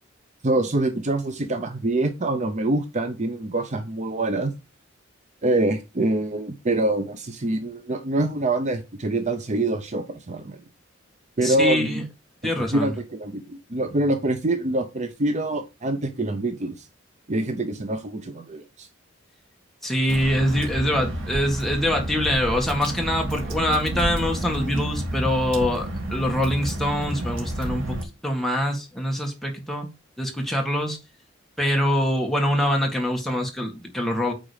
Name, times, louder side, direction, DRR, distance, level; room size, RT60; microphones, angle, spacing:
voice 1, 0.4-4.5 5.4-10.6 11.4-12.0 12.6-16.9 17.3-18.9, right 2 dB, 35° right, 0.7 m, -25 dB
voice 2, 11.4-12.0 12.4-12.9 19.8-28.0 28.2-29.9 30.2-31.0 31.6-34.3, equal, ahead, 1.7 m, -24 dB
Water / Drip, 20.1-28.0, right 1 dB, 70° right, 2.5 m, -30 dB
8.7 x 3.9 x 5.0 m
head